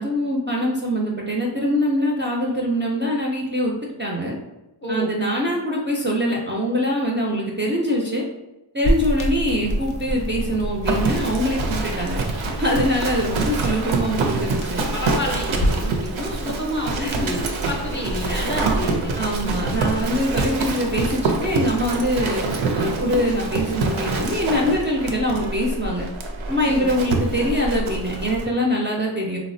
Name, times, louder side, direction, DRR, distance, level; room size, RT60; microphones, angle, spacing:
voice 1, 0.0-3.7 4.0-4.3 4.9-8.2 8.7-12.2 12.6-14.8 17.0-17.4 18.3-18.5 19.2-26.1 26.5-29.4, equal, 25° right, -3 dB, 0.4 m, -23 dB
voice 2, 4.8-5.1 14.9-19.7 26.6-26.9, left 1 dB, 25° left, -1 dB, 0.6 m, -29 dB
sound 1, 8.8-15.9, equal, 85° left, 0.6 m, -28 dB
Livestock farm animals working animals, 10.8-28.4, right 3 dB, 75° right, 0.5 m, -26 dB
3.3 x 2.0 x 2.6 m, 0.97 s
wide cardioid pair, 50°, 48 cm